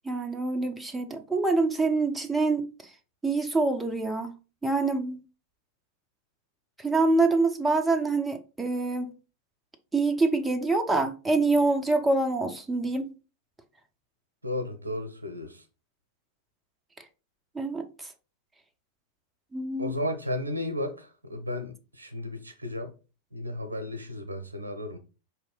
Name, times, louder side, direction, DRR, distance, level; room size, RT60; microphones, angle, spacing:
voice 1, 0.0-2.7 3.2-4.3 4.6-5.2 6.8-9.1 9.9-13.1 17.5-18.1 19.5-20.0, right 3 dB, 10° right, 0.6 m, -25 dB
voice 2, 14.4-15.6 19.8-22.9 23.3-25.0, left 1 dB, 80° right, 0.8 m, -34 dB
4.9 x 2.8 x 3.7 m
figure-of-eight pair, 90°, 0 cm